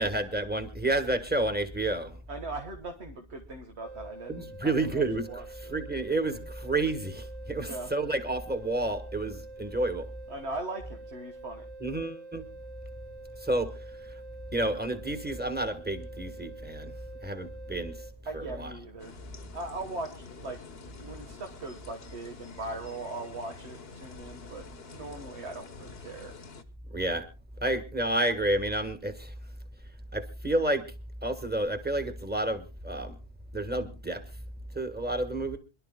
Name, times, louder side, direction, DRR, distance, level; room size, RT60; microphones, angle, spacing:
voice 1, 0.0-2.1 4.3-5.3 5.6-10.1 11.8-12.5 13.4-13.7 14.5-16.9 17.2-18.0 18.3-18.7 26.9-27.2 27.6-29.3 30.1-30.9 31.2-33.1 33.5-34.2 34.7-35.6, right 2 dB, 10° right, 7 dB, 1.3 m, -30 dB
voice 2, 2.3-5.8 7.7-7.9 10.3-11.7 18.3-19.2 19.5-20.6 21.0-26.4, right 2 dB, 85° right, 3 dB, 1.8 m, -40 dB
sound 1, 3.8-18.1, right 3 dB, 30° right, 2.3 m, -47 dB
sound 2, 19.0-26.6, left 4 dB, 65° left, 1.2 m, -47 dB
26.5 x 11.5 x 2.2 m, 0.30 s
omnidirectional pair, 1.1 m